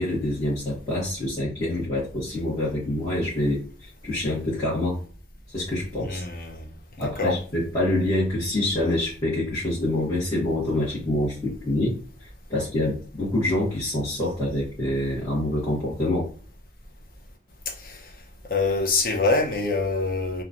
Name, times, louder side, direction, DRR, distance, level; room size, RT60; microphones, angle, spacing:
voice 1, 0.0-3.6 4.0-5.0 5.5-6.2 7.0-16.2, left 1 dB, 25° left, 1.2 m, -26 dB
voice 2, 6.0-6.7 7.0-7.4 17.7-18.1 18.5-20.4, left 3 dB, 55° left, 0.6 m, -25 dB
2.9 x 2.2 x 2.5 m
head